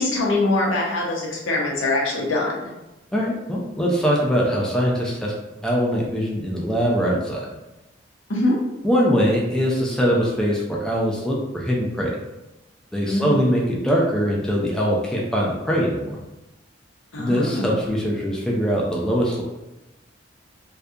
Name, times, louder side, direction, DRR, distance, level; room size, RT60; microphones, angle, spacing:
voice 1, 0.0-2.7 8.3-8.6 13.1-13.4 17.1-17.7, left 2 dB, 85° left, -3 dB, 0.7 m, -23 dB
voice 2, 3.1-5.3 5.6-7.5 8.8-12.1 12.9-16.2 17.2-19.4, equal, 5° left, -4 dB, 0.3 m, -22 dB
2.7 x 2.2 x 2.4 m, 1.0 s
head